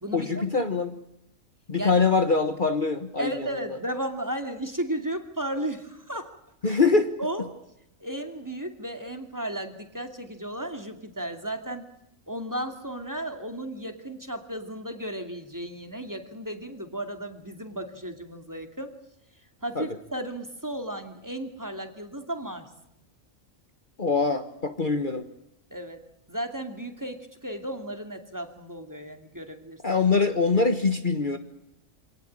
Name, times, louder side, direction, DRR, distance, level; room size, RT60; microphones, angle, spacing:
voice 1, 0.1-1.0 1.7-3.5 6.6-7.1 19.7-19.9 24.0-25.2 29.8-31.4, left 4 dB, 40° left, 8 dB, 1.4 m, -23 dB
voice 2, 3.2-6.3 6.6-6.8 7.2-7.4 8.0-11.9 12.3-18.9 19.6-22.7 25.7-26.0 26.3-29.8, right 1 dB, 15° right, 6 dB, 2.6 m, -34 dB
26.5 x 18.5 x 8.8 m, 0.84 s
omnidirectional pair, 1.4 m